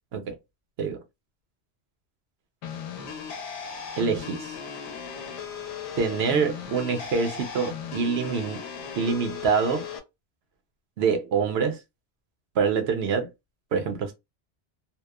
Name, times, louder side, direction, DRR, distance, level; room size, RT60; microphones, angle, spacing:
sound 1, 2.6-10.0, left 7 dB, 80° left, 0.9 m, -37 dB
voice 1, 4.0-4.6 6.0-8.6 9.0-9.8 11.0-11.8 12.6-13.3 13.7-14.1, right 5 dB, 70° right, 0.8 m, -25 dB
2.8 x 2.1 x 2.2 m
omnidirectional pair, 1.2 m